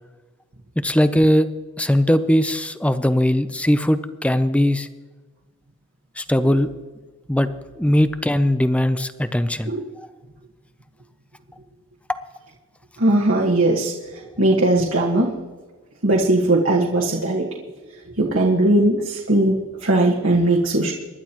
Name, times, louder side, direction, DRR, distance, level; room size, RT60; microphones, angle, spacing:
voice 1, 0.8-1.5 1.8-4.9 6.2-6.7 7.3-7.5 7.8-9.7, equal, 5° left, 12 dB, 0.5 m, -19 dB
voice 2, 13.0-13.9 14.4-15.4 16.0-17.5 18.2-20.9, right 2 dB, 65° right, -2 dB, 1.5 m, -19 dB
24.5 x 11.5 x 3.0 m, 1.3 s
head